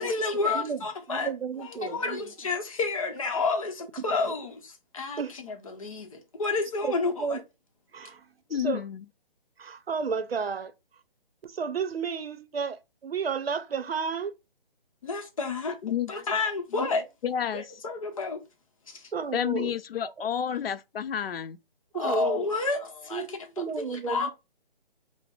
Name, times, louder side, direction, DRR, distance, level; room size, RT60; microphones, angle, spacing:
voice 1, 0.0-1.3 1.6-7.4 15.0-15.8 16.1-17.0 17.5-18.4 18.9-19.1 21.9-24.3, left 4 dB, 35° left, 0.7 m, -30 dB
voice 2, 1.1-2.3 4.1-4.3 5.2-5.3 6.8-7.4 7.9-8.8 9.6-10.7 11.4-14.3 19.1-19.7 20.0-20.3 21.9-22.5 23.1-23.3 23.6-24.3, right 6 dB, 85° right, 0.6 m, -32 dB
voice 3, 8.5-9.0 15.8-16.1 16.7-16.9 17.2-17.8 19.3-21.6, left 9 dB, 75° left, 0.4 m, -30 dB
5.1 x 2.0 x 2.4 m
hypercardioid pair, 160°, 29 cm